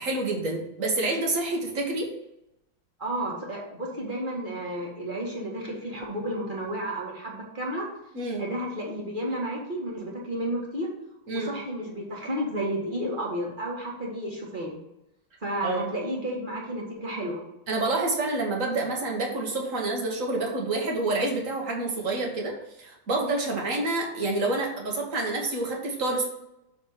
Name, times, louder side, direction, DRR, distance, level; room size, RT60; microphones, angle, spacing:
voice 1, 0.0-2.1 8.1-8.4 11.3-11.5 15.6-15.9 17.7-26.3, right 2 dB, 40° right, 0 dB, 1.6 m, -28 dB
voice 2, 3.0-7.9 8.4-10.9 11.3-14.8 15.4-17.4, right 1 dB, 25° right, -3 dB, 1.7 m, -32 dB
6.5 x 4.4 x 6.5 m, 0.87 s
omnidirectional pair, 2.3 m